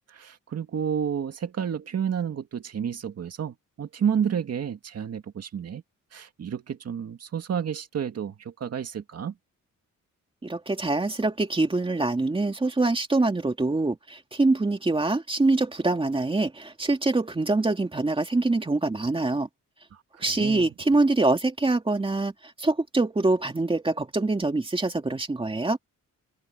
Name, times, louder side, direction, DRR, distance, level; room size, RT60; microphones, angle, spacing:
voice 1, 0.1-5.8 6.1-9.3 19.9-20.7, right 8 dB, 50° right, 2.1 m, -30 dB
voice 2, 10.4-19.5 20.2-25.8, right 2 dB, 15° right, 2.4 m, -24 dB
open air
wide cardioid pair, 170°, 32 cm